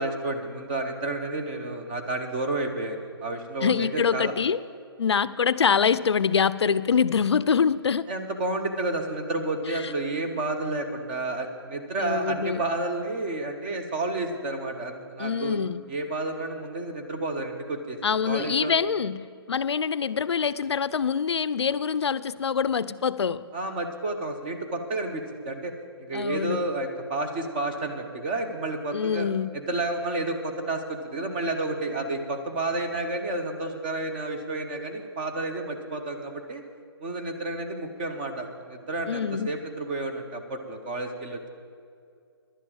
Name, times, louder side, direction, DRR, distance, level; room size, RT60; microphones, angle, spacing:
voice 1, 0.0-4.3 8.1-15.6 15.9-18.0 18.2-18.7 23.5-25.7 26.0-29.3 29.5-36.6 37.0-41.5, right 2 dB, 20° right, 5 dB, 0.9 m, -30 dB
voice 2, 3.6-4.6 5.0-8.1 12.0-12.6 15.2-15.8 18.0-23.4 26.1-26.6 28.9-29.5 39.1-39.5, left 6 dB, 85° left, 15 dB, 0.5 m, -25 dB
11.5 x 7.4 x 8.8 m, 2.3 s
hypercardioid pair, 165°, 14 cm